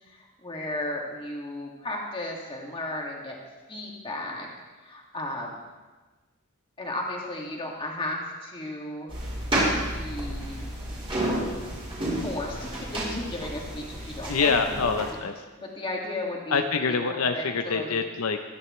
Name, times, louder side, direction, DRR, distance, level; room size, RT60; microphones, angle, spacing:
voice 1, 0.0-3.4 3.7-4.5 4.8-5.6 6.8-9.1 9.9-10.6 12.2-14.9 15.5-18.0, left 1 dB, 25° left, -1 dB, 2.3 m, -35 dB
sound 1, 9.1-15.1, right 1 dB, 25° right, 5.0 m, -31 dB
voice 2, 14.3-15.4 16.5-18.4, left 5 dB, 75° left, 6 dB, 0.7 m, -25 dB
23.0 x 9.9 x 3.2 m, 1.3 s
head